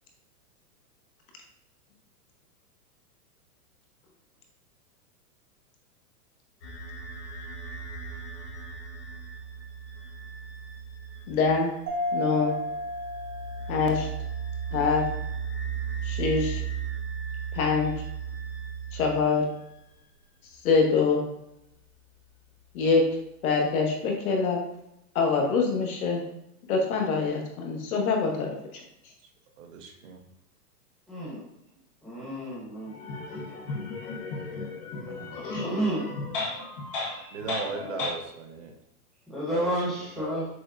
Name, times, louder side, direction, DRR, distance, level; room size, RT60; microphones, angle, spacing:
sound 1, 6.6-19.7, right 7 dB, 85° left, 1.2 m, -36 dB
voice 1, 11.3-11.7 12.1-12.5 13.7-14.1 14.7-15.1 16.0-16.6 17.5-17.9 18.9-19.5 20.6-21.2 22.7-23.1 23.4-24.7 25.1-26.2 26.7-28.8, left 4 dB, 60° left, 1 dB, 0.9 m, -24 dB
Mallet percussion, 11.9-14.4, left 1 dB, 80° right, 1.3 m, -33 dB
voice 2, 29.6-30.2 35.1-35.5 37.3-38.7 39.5-39.7 40.2-40.4, right 5 dB, 55° right, 4 dB, 0.7 m, -37 dB
voice 3, 31.1-31.4 32.0-32.9 33.3-33.4 35.6-36.1 39.3-40.5, right 1 dB, ahead, -8 dB, 0.9 m, -30 dB
voice 4, 32.8-38.1, left 3 dB, 35° left, -3 dB, 0.7 m, -35 dB
5.9 x 2.1 x 2.3 m, 0.82 s
hypercardioid pair, 150°, 47 cm